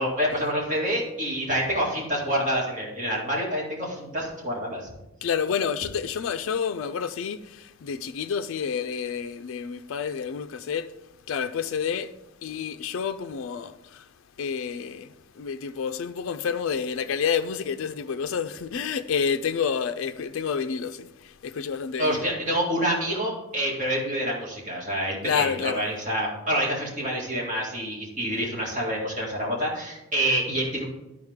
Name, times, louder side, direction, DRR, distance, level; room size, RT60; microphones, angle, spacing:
voice 1, 0.0-4.9 22.0-30.9, equal, 35° right, 2.1 m, -27 dB
voice 2, 5.2-10.9 11.3-12.1 12.4-14.1 14.4-22.3 25.2-25.8, left 6 dB, 65° left, 0.4 m, -29 dB
12.0 x 4.8 x 3.6 m
head